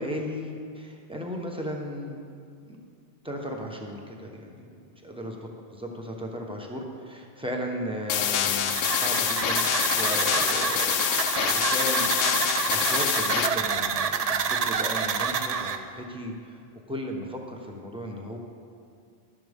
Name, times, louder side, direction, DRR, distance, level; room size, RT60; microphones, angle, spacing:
voice 1, 0.0-2.2 2.7-2.8 3.2-4.7 5.0-5.4 5.7-16.6 16.9-18.4, equal, 5° right, 0 dB, 1.1 m, -36 dB
sound 1, 8.1-13.5, left 9 dB, 70° left, 0.7 m, -26 dB
sound 2, 8.7-15.8, right 6 dB, 50° right, 0.5 m, -28 dB
12.5 x 10.5 x 3.6 m, 2.3 s
omnidirectional pair, 1.1 m